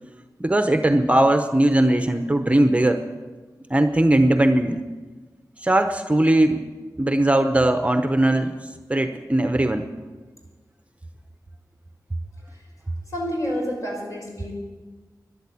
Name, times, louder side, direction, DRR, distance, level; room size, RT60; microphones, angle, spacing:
voice 1, 0.4-3.0 3.7-4.8 5.6-6.6 7.0-8.6 8.9-9.9, right 1 dB, 20° right, 7 dB, 0.8 m, -19 dB
voice 2, 13.1-14.5, equal, 50° left, -2 dB, 5.9 m, -28 dB
13.0 x 11.0 x 8.3 m, 1.3 s
wide cardioid pair, 90°, 7 cm